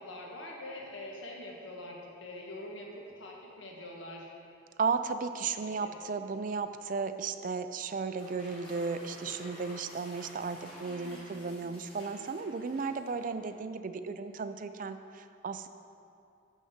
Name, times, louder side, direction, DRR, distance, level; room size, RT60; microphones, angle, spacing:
voice 1, 0.0-4.3 5.5-6.0 10.6-11.5, left 1 dB, 75° left, -1 dB, 1.3 m, -45 dB
voice 2, 4.8-15.7, right 5 dB, 45° right, 10 dB, 0.4 m, -35 dB
sound 1, 8.0-13.6, left 1 dB, 30° left, 1.8 m, -52 dB
6.5 x 6.4 x 7.2 m, 2.6 s
head